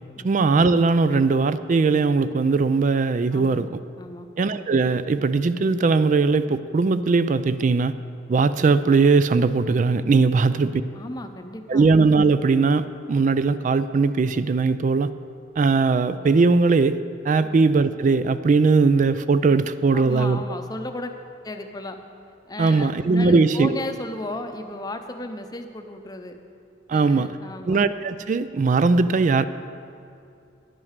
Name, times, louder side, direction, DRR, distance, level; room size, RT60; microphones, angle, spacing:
voice 1, 0.2-3.7 4.4-7.9 8.3-10.8 11.7-15.1 15.6-17.0 17.2-20.4 22.6-23.8 26.9-27.3 27.6-29.4, right 4 dB, 40° right, 14 dB, 0.3 m, -19 dB
voice 2, 3.3-3.7 4.0-4.3 10.3-10.4 10.9-11.9 19.9-21.1 21.4-22.0 22.5-26.4 26.9-27.8, left 1 dB, 20° left, 6 dB, 0.7 m, -34 dB
10.5 x 8.9 x 6.6 m, 2.5 s
head